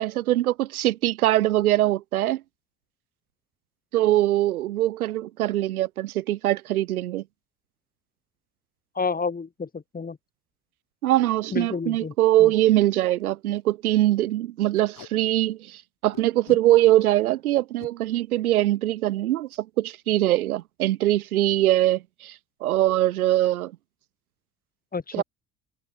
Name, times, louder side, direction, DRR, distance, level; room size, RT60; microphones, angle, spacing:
voice 1, 0.0-2.4 3.9-7.2 11.0-22.3 22.6-23.7 25.1-25.2, right 14 dB, 80° right, 0.7 m, -22 dB
voice 2, 9.0-10.2 11.5-12.1 12.4-12.5 24.9-25.2, left 4 dB, 20° left, 1.9 m, -30 dB
Packing tape duct tape, 11.1-11.3 11.7-11.8 12.1-12.2 12.7-12.8 13.0-13.2 13.6-13.7 14.7-15.1 16.1-16.6 17.6-17.9 19.5-19.6 20.0-20.2 20.4-20.8, left 12 dB, 50° left, 5.0 m, -46 dB
figure-of-eight pair, 55°, 43 cm